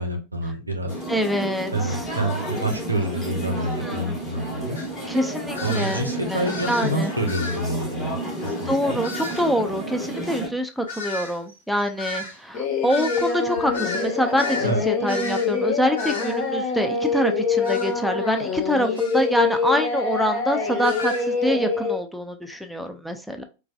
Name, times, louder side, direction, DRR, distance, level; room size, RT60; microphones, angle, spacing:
voice 1, 0.0-0.9 1.7-4.8 5.6-9.0 14.6-14.8, right 1 dB, 85° right, 4 dB, 0.7 m, -27 dB
sound 1, 0.9-10.5, right 1 dB, 20° left, 1.2 m, -31 dB
voice 2, 1.1-2.1 3.8-4.1 5.1-6.1 6.3-7.1 8.7-23.4, equal, ahead, 6 dB, 0.4 m, -25 dB
sound 2, 4.7-4.9 5.5-6.1 6.4-7.0 7.3-7.6 9.0-9.5 10.9-14.7 15.1-15.5 16.0-16.4 17.6-17.9 18.9-19.2 20.8-21.3, left 3 dB, 65° left, 1.1 m, -33 dB
Singing, 12.5-22.0, left 4 dB, 40° left, 0.8 m, -25 dB
4.5 x 2.2 x 2.3 m, 0.30 s
figure-of-eight pair, 90°, 0 cm